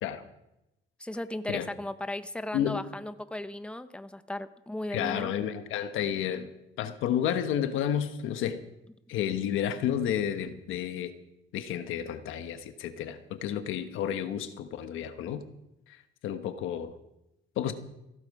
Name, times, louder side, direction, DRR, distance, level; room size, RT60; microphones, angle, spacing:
voice 1, 1.0-5.3, left 1 dB, 5° left, 11 dB, 0.9 m, -36 dB
voice 2, 4.9-6.5 6.8-8.6 9.1-11.1 11.5-15.4 16.2-16.9 17.6-17.7, left 9 dB, 90° left, 9 dB, 1.2 m, -31 dB
16.5 x 14.5 x 4.8 m, 0.90 s
cardioid pair, 90°, 20 cm